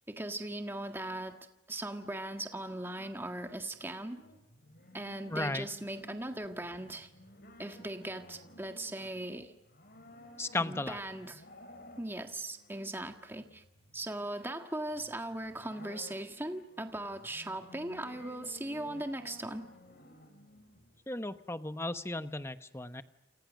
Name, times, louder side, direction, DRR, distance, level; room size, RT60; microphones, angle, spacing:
voice 1, 0.1-1.4 1.7-4.2 4.9-7.1 7.6-9.5 10.6-11.4 12.0-13.6 13.9-19.7, right 1 dB, 10° right, 5 dB, 1.7 m, -39 dB
sound 1, 3.7-21.0, left 1 dB, 50° left, 4.7 m, -55 dB
voice 2, 5.3-5.6 10.4-11.0 21.1-23.0, left 2 dB, 15° left, 10 dB, 0.9 m, -35 dB
29.0 x 28.0 x 6.4 m, 0.88 s
head